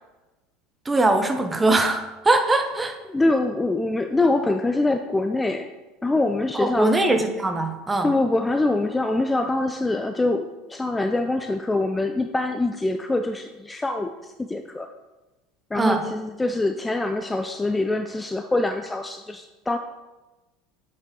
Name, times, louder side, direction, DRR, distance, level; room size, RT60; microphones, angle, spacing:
voice 1, 0.9-3.0 6.5-8.1 15.7-16.1, right 2 dB, 15° right, 6 dB, 0.8 m, -21 dB
voice 2, 3.1-5.7 6.0-6.9 8.0-14.9 15.7-19.8, left 2 dB, 10° left, 7 dB, 0.4 m, -24 dB
7.6 x 5.5 x 3.6 m, 1.1 s
figure-of-eight pair, 70°, 0 cm